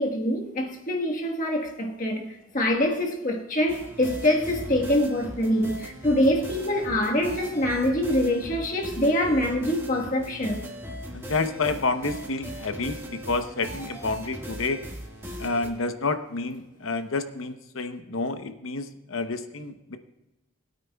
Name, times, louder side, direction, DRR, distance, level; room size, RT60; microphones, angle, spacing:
voice 1, 0.0-10.6, left 1 dB, 40° left, 1.4 m, -25 dB
sound 1, 3.7-15.7, equal, 10° right, 1.7 m, -39 dB
voice 2, 11.1-14.8 15.4-20.0, left 3 dB, 75° left, 0.9 m, -29 dB
20.5 x 9.2 x 2.3 m
head